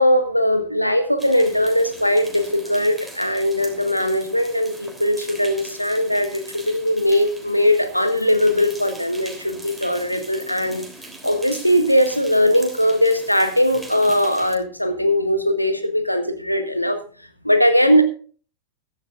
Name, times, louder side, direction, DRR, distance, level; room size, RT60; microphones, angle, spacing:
voice 1, 0.0-10.8 11.2-17.0 17.4-18.0, equal, 90° left, 8 dB, 1.6 m, -19 dB
sound 1, 1.2-14.6, right 2 dB, ahead, 3.2 m, -41 dB
15.5 x 12.5 x 2.5 m, 0.41 s
figure-of-eight pair, 90°, 0 cm